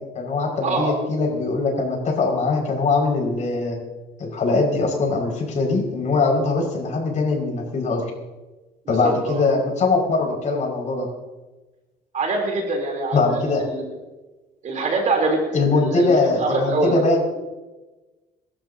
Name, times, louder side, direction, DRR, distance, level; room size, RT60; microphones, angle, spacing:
voice 1, 0.0-3.8 4.2-8.0 8.9-11.1 13.1-13.6 15.5-17.2, left 3 dB, 45° left, 0 dB, 5.9 m, -21 dB
voice 2, 0.6-0.9 8.9-9.4 12.1-13.9 14.6-16.1 16.4-17.0, right 3 dB, 45° right, 1 dB, 3.7 m, -24 dB
28.0 x 13.0 x 2.9 m, 1.2 s
cardioid pair, 110°, 17 cm